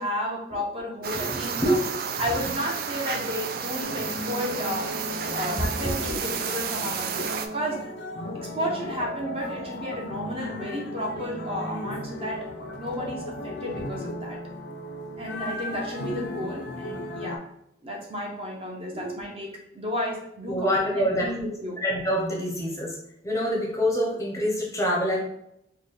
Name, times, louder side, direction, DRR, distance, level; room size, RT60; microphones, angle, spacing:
voice 1, 0.0-1.8 2.2-5.0 5.3-7.8 8.5-12.5 12.8-14.4 15.2-17.4 17.8-19.5 19.7-21.8, equal, 30° right, -1 dB, 0.7 m, -32 dB
sound 1, 1.0-7.5, right 6 dB, 50° right, 0.3 m, -31 dB
voice 2, 1.1-1.9 2.4-2.5 5.8-6.2 13.7-13.8 16.0-16.1 18.9-19.1 20.5-21.3 21.8-23.0 23.2-25.2, equal, 15° left, -2 dB, 0.6 m, -26 dB
sound 2, 3.8-17.4, left 1 dB, 60° left, 0.5 m, -36 dB
4.0 x 2.2 x 3.3 m, 0.77 s
head